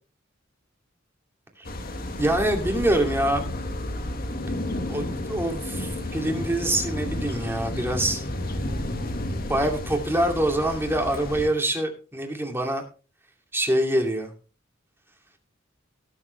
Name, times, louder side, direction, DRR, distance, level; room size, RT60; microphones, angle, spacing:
sound 1, 1.7-11.5, left 1 dB, 50° left, 1.6 m, -31 dB
voice 1, 2.2-3.4 4.9-8.2 9.5-12.8 13.5-14.3, right 1 dB, 10° right, 3 dB, 2.5 m, -25 dB
18.5 x 7.3 x 3.3 m, 0.34 s
head